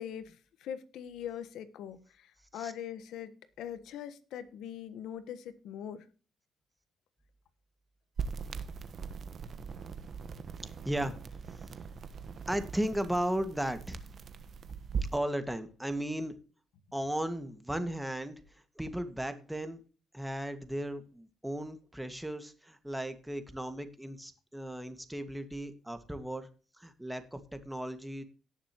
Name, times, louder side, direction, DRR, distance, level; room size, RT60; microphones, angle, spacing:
voice 1, 0.0-3.3 3.6-6.0, left 9 dB, 85° left, 1.3 m, -42 dB
sound 1, 8.2-15.2, right 6 dB, 50° right, 1.3 m, -40 dB
voice 2, 10.6-11.7 12.5-14.1 15.0-16.4 16.9-19.8 20.1-26.5 26.8-28.2, right 1 dB, 5° right, 1.9 m, -36 dB
18.0 x 6.9 x 3.0 m
cardioid pair, 90°, 0 cm